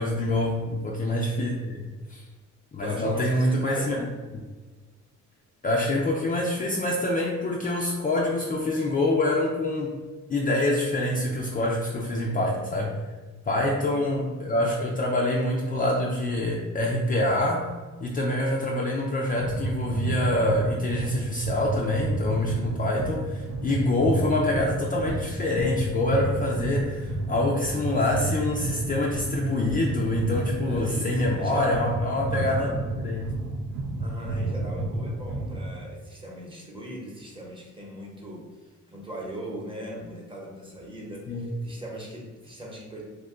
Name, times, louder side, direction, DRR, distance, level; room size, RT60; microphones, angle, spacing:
voice 1, 0.0-2.2 2.7-4.0 5.6-9.9 10.3-12.9 13.5-17.7 18.0-32.7 33.0-33.3 41.3-41.5, left 1 dB, 30° left, -1 dB, 0.4 m, -26 dB
voice 2, 2.8-4.0 13.5-14.0 30.7-31.9 32.2-32.8 34.0-43.0, right 1 dB, 15° right, -3 dB, 0.9 m, -39 dB
sound 1, 19.4-35.8, right 2 dB, 80° right, 0.5 m, -31 dB
2.8 x 2.2 x 3.7 m, 1.3 s
cardioid pair, 90°, 30 cm